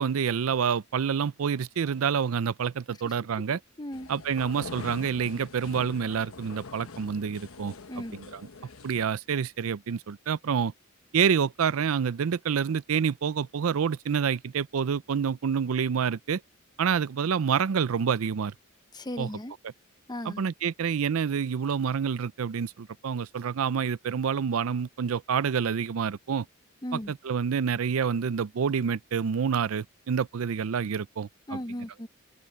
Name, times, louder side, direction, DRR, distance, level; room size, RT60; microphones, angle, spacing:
voice 1, 0.0-3.6 4.1-7.7 8.1-8.4 8.8-10.7 11.1-16.4 16.8-18.5 19.2-19.3 20.3-26.5 26.9-31.6, right 7 dB, 80° right, 0.4 m, -28 dB
voice 2, 3.8-4.1 7.9-8.2 18.9-19.5 20.1-20.4 26.8-27.1 31.5-32.1, left 1 dB, 20° left, 1.0 m, -36 dB
sound 1, 3.9-9.1, left 4 dB, 80° left, 1.1 m, -44 dB
open air
head